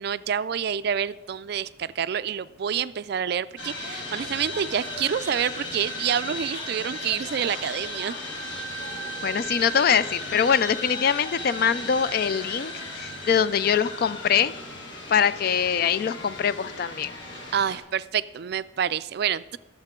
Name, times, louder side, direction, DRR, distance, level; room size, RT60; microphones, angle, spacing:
voice 1, 0.0-8.1 17.3-19.6, right 8 dB, 50° right, 15 dB, 0.3 m, -28 dB
sound 1, 3.6-17.8, left 1 dB, 65° left, 2.4 m, -36 dB
voice 2, 9.2-14.5 15.1-17.1, left 7 dB, 45° left, 15 dB, 0.3 m, -23 dB
21.0 x 7.4 x 3.7 m, 1.1 s
head